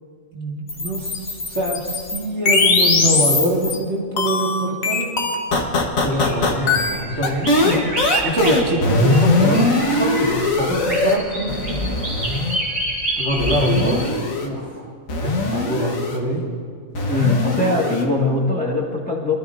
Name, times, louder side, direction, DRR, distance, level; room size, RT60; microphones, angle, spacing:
voice 1, 0.3-5.1 6.0-7.8 8.2-12.0 13.2-14.9 15.2-16.4, right 1 dB, 55° right, -3 dB, 2.1 m, -24 dB
sound 1, 0.7-3.8 4.2-11.2 11.5-12.6 13.4-14.5 15.1-16.2 17.0-18.0, left 3 dB, 80° left, 1.7 m, -20 dB
sound 2, 6.1-14.1, right 1 dB, 75° right, 3.3 m, -29 dB
voice 2, 17.1-19.3, left 2 dB, 5° left, -4 dB, 1.6 m, -21 dB
23.0 x 13.0 x 2.6 m, 2.1 s
omnidirectional pair, 1.4 m